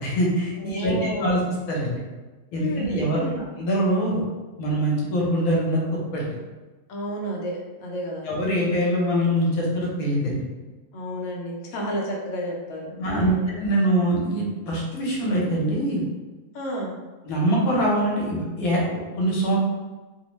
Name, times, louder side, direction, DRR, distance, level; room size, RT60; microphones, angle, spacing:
voice 1, 0.0-1.4 1.7-2.0 2.5-3.2 3.6-4.2 4.6-6.4 8.2-10.4 13.0-16.0 17.2-19.6, right 1 dB, 85° left, -3 dB, 1.2 m, -23 dB
voice 2, 0.6-1.3 2.5-3.4 6.9-8.2 10.9-13.5 16.5-16.9, equal, 65° left, -2 dB, 0.9 m, -31 dB
2.8 x 2.0 x 3.0 m, 1.2 s
omnidirectional pair, 1.5 m